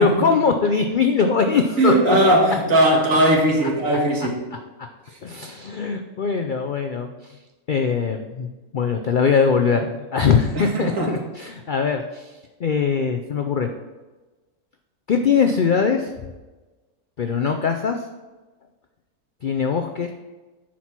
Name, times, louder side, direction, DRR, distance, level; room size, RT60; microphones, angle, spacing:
voice 1, 0.0-2.2 5.2-7.4 7.7-13.7 15.1-16.1 17.2-18.0 19.4-20.1, left 5 dB, 70° left, 5 dB, 0.4 m, -21 dB
voice 2, 1.8-4.4 10.6-11.1, right 1 dB, 60° right, -1 dB, 2.0 m, -18 dB
10.0 x 4.6 x 5.8 m, 1.2 s
omnidirectional pair, 1.6 m